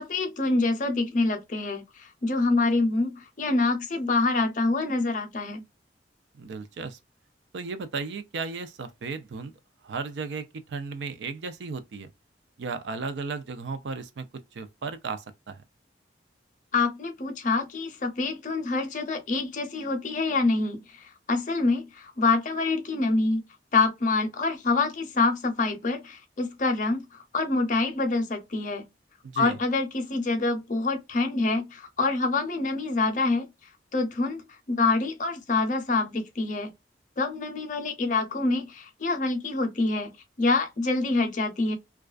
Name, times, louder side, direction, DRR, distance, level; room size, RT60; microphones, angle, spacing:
voice 1, 0.0-5.6 16.7-23.4 23.7-28.8 29.4-33.5 33.9-34.4 34.7-36.7 37.2-40.1 40.4-41.7, left 3 dB, 45° left, 0.6 m, -26 dB
voice 2, 6.4-7.0 7.5-9.5 9.8-12.1 12.6-14.3 14.5-15.6 29.2-29.6, right 4 dB, 80° right, 0.4 m, -35 dB
2.3 x 2.3 x 2.3 m
head